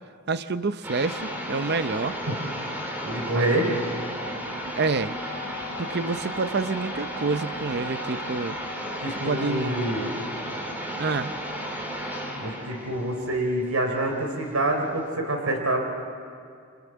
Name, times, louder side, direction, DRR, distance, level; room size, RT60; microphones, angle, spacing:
voice 1, 0.3-2.2 3.3-3.8 4.8-5.2 5.8-8.6 9.3-9.8 11.0-11.3, right 4 dB, 50° right, 12 dB, 0.6 m, -28 dB
sound 1, 0.8-14.3, equal, 10° right, 3.4 m, -34 dB
voice 2, 3.0-3.7 9.0-10.1 12.4-15.8, right 1 dB, 80° right, 3 dB, 3.6 m, -26 dB
29.0 x 27.0 x 7.4 m, 2.3 s
head